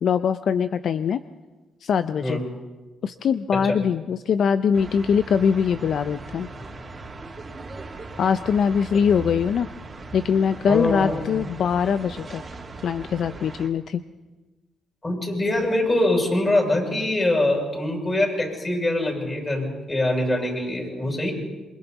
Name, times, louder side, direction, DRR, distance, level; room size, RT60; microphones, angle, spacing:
voice 1, 0.0-1.2 1.8-2.4 3.0-6.5 8.2-9.7 10.1-12.4 12.8-14.0, left 7 dB, 60° left, 11 dB, 0.6 m, -22 dB
sound 1, 4.7-13.7, right 3 dB, 30° right, 2.9 m, -39 dB
voice 2, 10.7-11.2 15.0-21.3, left 1 dB, 25° left, 0 dB, 7.1 m, -23 dB
27.0 x 24.0 x 4.1 m, 1.2 s
cardioid pair, 90°, 0 cm